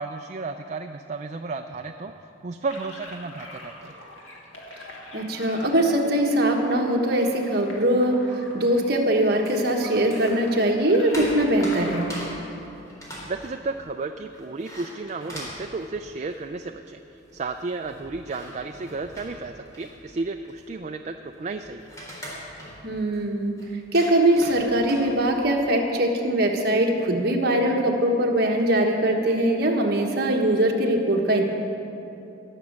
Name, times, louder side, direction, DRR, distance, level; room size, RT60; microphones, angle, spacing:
voice 1, 0.0-2.1 2.4-3.9 13.2-21.9, right 3 dB, 35° right, 5 dB, 0.4 m, -33 dB
sound 1, 2.7-12.1, left 1 dB, 75° left, 2.1 m, -43 dB
voice 2, 5.1-12.1 22.8-23.6 23.9-31.4, right 1 dB, 55° right, 1 dB, 1.3 m, -22 dB
sound 2, 9.4-10.4 10.8-16.7 16.9-17.0 17.2-25.6, equal, 15° left, 3.6 m, -41 dB
17.5 x 6.3 x 7.3 m, 2.9 s
head